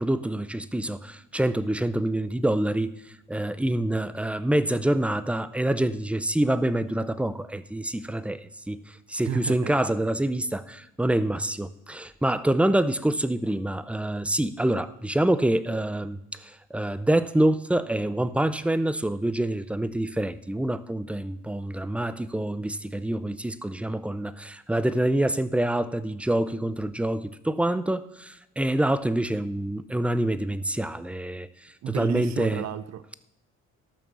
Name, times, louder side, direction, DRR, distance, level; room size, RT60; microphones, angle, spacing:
voice 1, 0.0-2.9 3.3-32.7, right 1 dB, 5° right, 0.6 m, -26 dB
voice 2, 9.2-9.7 31.8-33.1, right 10 dB, 65° right, 0.6 m, -32 dB
13.0 x 6.0 x 6.9 m
cardioid pair, 90°, 30 cm